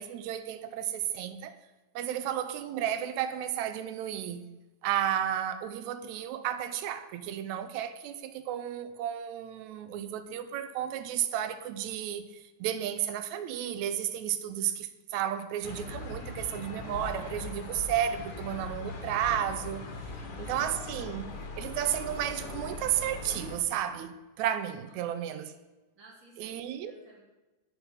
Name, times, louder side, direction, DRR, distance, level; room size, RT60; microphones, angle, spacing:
voice 1, 0.0-1.5 2.0-4.5 4.8-19.8 20.4-21.3 21.6-25.5 26.4-27.0, right 10 dB, 85° right, 1.9 m, -33 dB
sound 1, 15.6-23.6, left 3 dB, 55° left, 1.6 m, -40 dB
voice 2, 20.1-20.7 24.9-25.6 26.0-27.2, right 2 dB, 40° right, 2.5 m, -58 dB
8.0 x 6.9 x 5.4 m
omnidirectional pair, 3.3 m